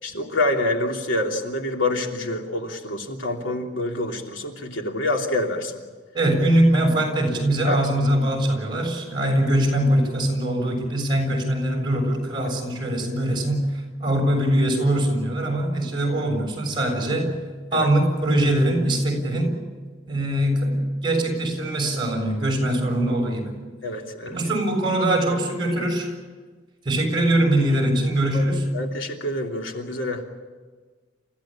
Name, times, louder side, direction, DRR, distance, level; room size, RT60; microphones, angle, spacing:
voice 1, 0.0-5.8 7.7-7.8 9.2-9.4 12.4-12.6 17.7-17.9 23.8-24.4 28.3-28.4 28.7-30.2, left 2 dB, 85° left, 2 dB, 3.1 m, -27 dB
voice 2, 6.1-17.4 17.7-19.5 20.1-23.5 24.3-26.1 26.8-28.6, right 1 dB, 25° right, 2 dB, 6.7 m, -22 dB
29.0 x 15.5 x 8.9 m, 1.4 s
head